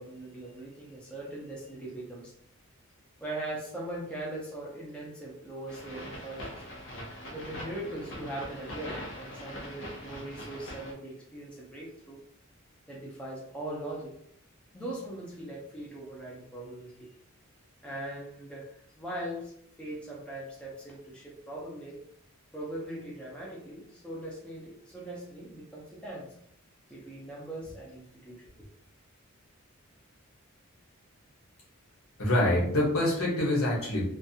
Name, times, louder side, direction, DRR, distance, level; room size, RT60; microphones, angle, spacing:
voice 1, 0.0-2.3 3.2-6.6 7.3-12.2 12.9-14.1 14.7-17.1 17.8-19.5 19.8-22.0 22.5-26.3 26.9-28.4, right 1 dB, 5° left, -5 dB, 0.5 m, -40 dB
sound 1, 5.7-10.9, equal, 60° left, 0.6 m, -42 dB
voice 2, 32.2-34.1, left 1 dB, 80° left, -4 dB, 1.1 m, -25 dB
2.5 x 2.3 x 2.7 m, 0.69 s
head